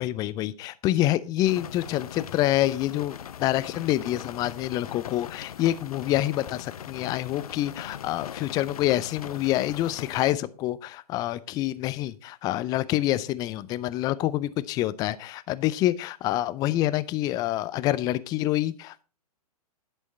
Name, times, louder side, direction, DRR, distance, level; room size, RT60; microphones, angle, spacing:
voice 1, 0.0-3.1 3.4-19.0, left 14 dB, 20° left, 17 dB, 0.4 m, -27 dB
sound 1, 1.4-10.3, left 9 dB, 65° left, 0.5 m, -41 dB
11.0 x 6.3 x 4.0 m, 0.32 s
figure-of-eight pair, 115°, 20 cm